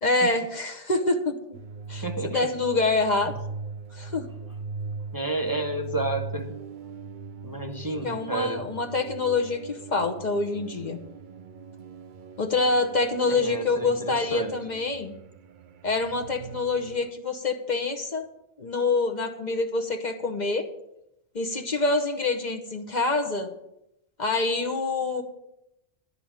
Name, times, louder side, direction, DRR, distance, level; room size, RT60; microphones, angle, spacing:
voice 1, 0.0-1.4 1.9-3.3 3.9-4.3 8.0-11.0 12.4-15.1 15.8-18.3 18.6-20.7 21.3-23.5 24.2-25.2, left 3 dB, 45° left, 4 dB, 1.0 m, -26 dB
sound 1, 1.5-17.1, right 4 dB, 55° right, 0.6 m, -40 dB
voice 2, 2.0-2.5 3.3-3.4 5.1-6.6 7.4-8.6 13.2-14.6, right 2 dB, 20° right, 4 dB, 0.9 m, -31 dB
11.5 x 5.6 x 8.8 m, 0.86 s
omnidirectional pair, 1.1 m